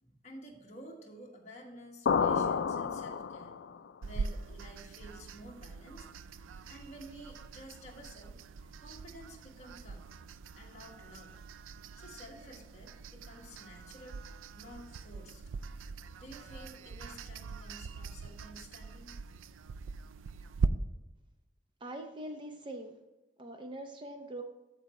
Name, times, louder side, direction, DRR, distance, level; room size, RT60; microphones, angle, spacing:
voice 1, 0.0-3.6 4.0-6.1 6.7-10.1 10.6-11.4 11.9-14.2 14.5-15.4 15.7-15.8 16.2-19.2, equal, 35° left, 0 dB, 1.5 m, -51 dB
sound 1, 2.1-3.8, left 6 dB, 65° left, 0.4 m, -30 dB
sound 2, 4.0-20.7, right 4 dB, 80° right, 0.4 m, -42 dB
voice 2, 21.8-23.0 23.4-24.4, right 1 dB, 25° right, 5 dB, 0.6 m, -43 dB
13.5 x 4.7 x 3.2 m, 1.1 s
head